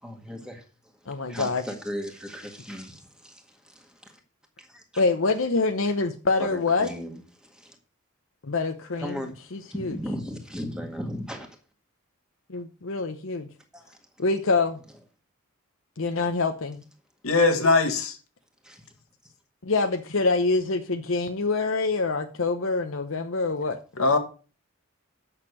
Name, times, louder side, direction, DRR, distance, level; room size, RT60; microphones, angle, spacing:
voice 1, 0.0-4.2 4.6-4.8 6.4-7.8 9.0-11.6 13.7-14.0 18.6-18.9, equal, 5° right, 1.8 m, -37 dB
voice 2, 1.1-1.6 5.0-6.9 8.4-9.1 9.5-10.0 12.5-13.5 14.2-14.8 16.0-16.8 19.6-23.8, left 3 dB, 65° left, 0.9 m, -25 dB
voice 3, 17.2-18.2 24.0-24.2, left 3 dB, 85° left, 2.0 m, -20 dB
8.8 x 6.7 x 6.3 m
head